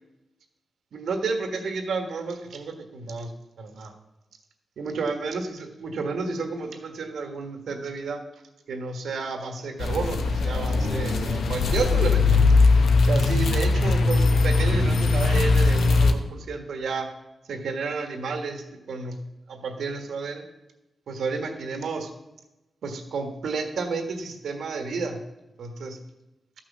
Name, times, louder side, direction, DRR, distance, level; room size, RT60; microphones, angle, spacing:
voice 1, 0.9-3.3 3.6-3.9 4.8-8.2 8.7-12.4 13.0-17.1 17.5-19.2 19.5-20.4 21.1-22.1 22.8-25.2 25.6-26.0, right 4 dB, 90° right, 5 dB, 1.6 m, -31 dB
sound 1, 9.8-16.1, left 3 dB, 90° left, 1.0 m, -20 dB
13.0 x 6.2 x 7.2 m, 0.97 s
wide cardioid pair, 100°, 0 cm